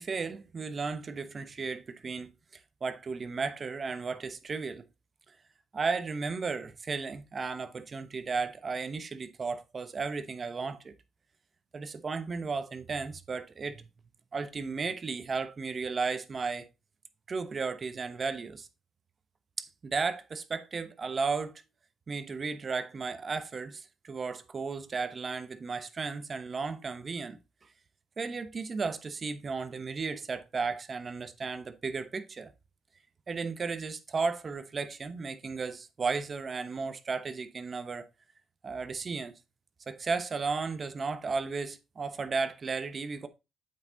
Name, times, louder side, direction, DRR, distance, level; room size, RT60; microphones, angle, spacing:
voice 1, 0.0-2.3 2.8-4.8 5.7-10.9 11.7-13.9 14.3-16.7 17.3-18.7 19.6-21.5 22.1-27.4 28.2-32.5 33.3-38.1 38.6-39.3 39.9-43.3, right 4 dB, 40° right, 1.0 m, -34 dB
8.0 x 5.7 x 4.0 m
cardioid pair, 90°, 0 cm